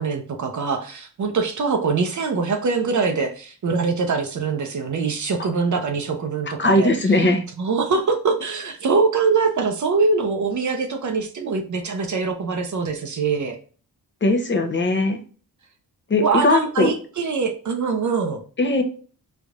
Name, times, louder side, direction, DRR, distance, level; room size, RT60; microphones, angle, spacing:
voice 1, 0.0-6.9 7.6-13.6 16.2-18.4, right 4 dB, 50° right, 5 dB, 0.7 m, -23 dB
voice 2, 6.6-7.5 14.2-15.2 16.1-16.9 18.6-18.8, left 2 dB, 30° left, 6 dB, 0.7 m, -19 dB
4.0 x 3.3 x 2.4 m, 0.40 s
cardioid pair, 85°, 39 cm